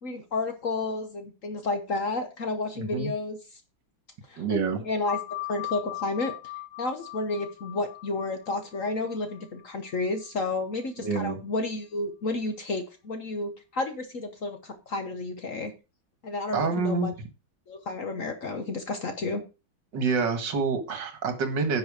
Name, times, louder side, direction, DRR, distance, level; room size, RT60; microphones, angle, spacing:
voice 1, 0.0-3.4 4.3-5.2 5.5-6.3 6.8-15.7 16.2-17.1 17.7-19.4, left 3 dB, 50° left, 7 dB, 1.3 m, -31 dB
voice 2, 2.8-3.1 4.4-4.8 11.0-11.4 16.5-17.1 19.9-21.8, right 4 dB, 65° right, 7 dB, 2.2 m, -27 dB
sound 1, 5.1-10.3, left 18 dB, 85° left, 1.6 m, -39 dB
10.5 x 5.5 x 4.9 m, 0.30 s
omnidirectional pair, 2.1 m